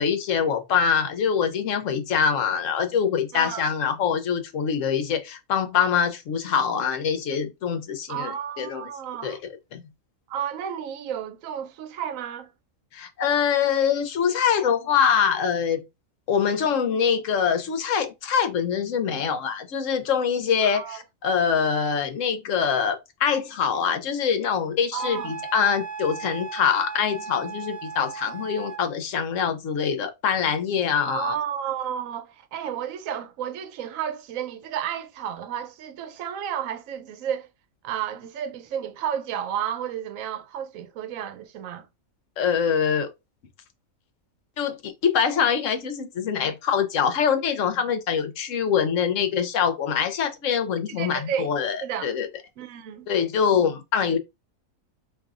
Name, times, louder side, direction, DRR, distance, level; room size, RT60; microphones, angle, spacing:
voice 1, 0.0-8.8 9.2-9.4 9.7-9.8 12.9-15.8 16.3-31.4 42.4-43.1 44.6-52.3 53.1-54.2, left 7 dB, 70° left, 1.0 m, -24 dB
voice 2, 3.3-3.7 8.1-9.4 10.3-12.5 20.6-21.0 24.9-25.3 31.0-37.5 37.8-41.9 50.9-51.5 51.8-52.1 52.6-53.1, right 9 dB, 75° right, 1.0 m, -32 dB
Wind instrument woodwind instrument, 25.0-28.8, right 6 dB, 20° right, 0.4 m, -36 dB
5.1 x 2.7 x 2.4 m
omnidirectional pair, 1.4 m